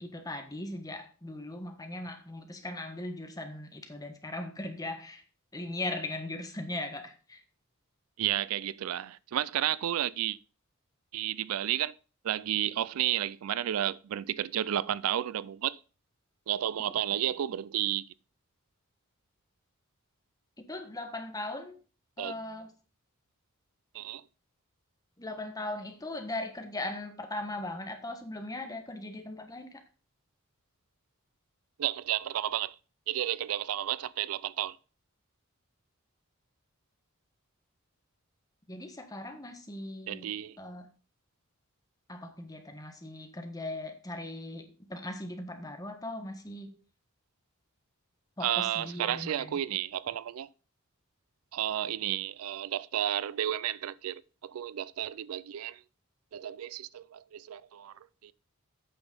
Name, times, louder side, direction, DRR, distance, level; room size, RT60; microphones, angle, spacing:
voice 1, 0.0-5.2 5.5-7.4 20.7-21.8 22.2-22.7 25.2-29.8 38.7-40.3 40.6-40.9 42.1-46.8 48.4-49.6, left 2 dB, 15° left, 1.3 m, -39 dB
voice 2, 8.2-10.4 11.1-11.9 12.2-15.8 16.5-18.0 22.2-22.3 23.9-24.2 31.8-32.7 33.1-34.8 40.1-40.6 48.4-50.5 51.5-55.8 56.3-57.9 58.2-58.3, right 11 dB, 85° right, 0.4 m, -32 dB
8.6 x 6.1 x 5.2 m
head